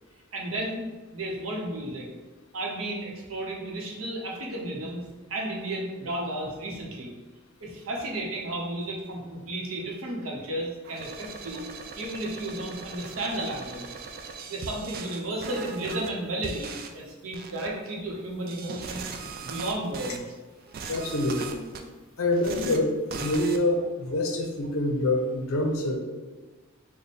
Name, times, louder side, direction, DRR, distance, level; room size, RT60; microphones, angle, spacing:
voice 1, 0.3-0.8 1.1-2.1 2.5-5.0 5.3-7.1 7.6-11.6 12.0-19.0 19.4-20.3, right 1 dB, 85° right, -1 dB, 0.8 m, -33 dB
sound 1, 10.8-16.1 16.4-16.9 17.3-17.7 18.5-20.2 20.6-21.8 22.3-22.8 23.1-23.6, right 5 dB, 45° right, 0.3 m, -39 dB
voice 2, 20.9-21.6 22.2-26.0, left 1 dB, 80° left, 3 dB, 0.6 m, -26 dB
3.5 x 2.1 x 4.1 m, 1.3 s
head